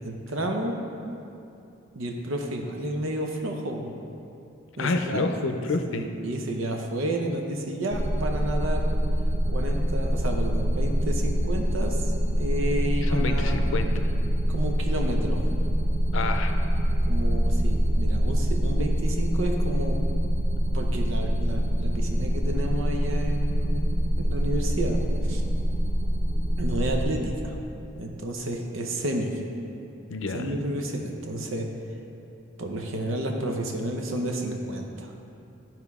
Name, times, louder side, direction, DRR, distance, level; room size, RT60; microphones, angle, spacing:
voice 1, 0.0-0.8 1.9-3.9 4.8-5.5 5.9-8.8 9.5-13.6 14.5-15.4 17.1-20.0 20.7-25.4 26.6-27.6 27.9-29.4 30.3-31.7 32.6-35.1, right 1 dB, 80° right, 2 dB, 0.7 m, -31 dB
voice 2, 4.8-6.1 13.0-14.1 16.1-16.6 30.1-30.5, left 3 dB, 75° left, 6 dB, 0.5 m, -28 dB
sound 1, 7.9-27.0, equal, 40° right, 0.6 m, -25 dB
12.0 x 4.4 x 3.5 m, 2.7 s
head